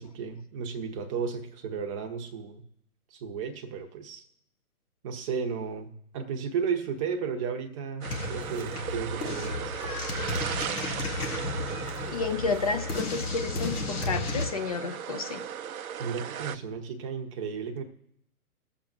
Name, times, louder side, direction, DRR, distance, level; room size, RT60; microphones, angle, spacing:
voice 1, 0.0-2.7 3.1-4.2 5.0-10.0 16.0-17.8, right 6 dB, 20° right, 4 dB, 0.8 m, -34 dB
sound 1, 8.0-14.5, left 3 dB, 75° left, 1.7 m, -33 dB
sound 2, 8.0-16.6, right 9 dB, 65° right, 0.6 m, -37 dB
voice 2, 12.1-15.5, left 4 dB, 25° left, 7 dB, 0.5 m, -31 dB
21.0 x 7.3 x 2.6 m, 0.78 s
hypercardioid pair, 135°, 46 cm